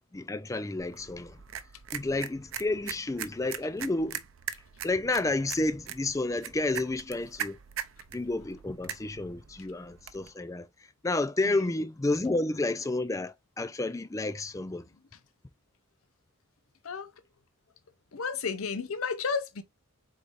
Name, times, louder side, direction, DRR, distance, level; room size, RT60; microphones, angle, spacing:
voice 1, 0.1-1.4 1.9-4.2 4.8-7.6 8.1-14.8, left 2 dB, 15° left, 0.3 m, -31 dB
sound 1, 0.8-10.3, right 8 dB, 65° right, 0.6 m, -41 dB
voice 2, 18.1-19.6, left 5 dB, 75° left, 0.6 m, -32 dB
4.7 x 3.9 x 2.5 m
head